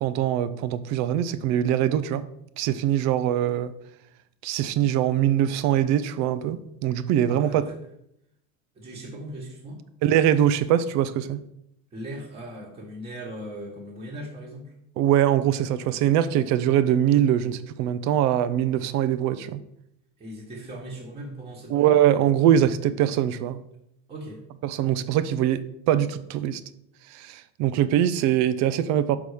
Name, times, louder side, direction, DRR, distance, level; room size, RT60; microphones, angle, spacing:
voice 1, 0.0-2.2 2.6-3.7 4.4-7.6 10.0-11.4 15.0-19.6 21.7-23.6 24.6-26.6 27.1-29.2, right 11 dB, 50° right, 13 dB, 0.6 m, -22 dB
voice 2, 7.3-7.8 8.7-9.8 11.9-14.7 15.9-16.1 20.2-22.0 24.1-24.4, right 1 dB, 15° right, -4 dB, 1.4 m, -39 dB
6.0 x 5.4 x 4.9 m, 0.77 s
cardioid pair, 150°, 35 cm